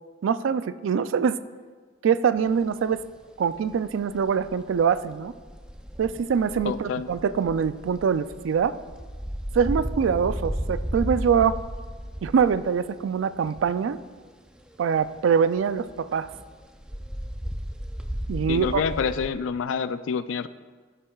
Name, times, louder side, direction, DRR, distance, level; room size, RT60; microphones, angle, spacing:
voice 1, 0.2-1.4 2.0-3.0 3.4-5.3 6.0-8.8 9.5-11.6 12.2-14.0 14.8-16.3 18.3-18.8, right 6 dB, 75° right, 14 dB, 0.3 m, -24 dB
sound 1, 2.4-3.2 3.5-14.3 14.6-19.3, equal, 5° right, 0.4 m, -35 dB
voice 2, 6.6-7.1 18.5-20.5, left 6 dB, 75° left, 14 dB, 0.4 m, -27 dB
13.5 x 7.4 x 2.3 m, 1.5 s
head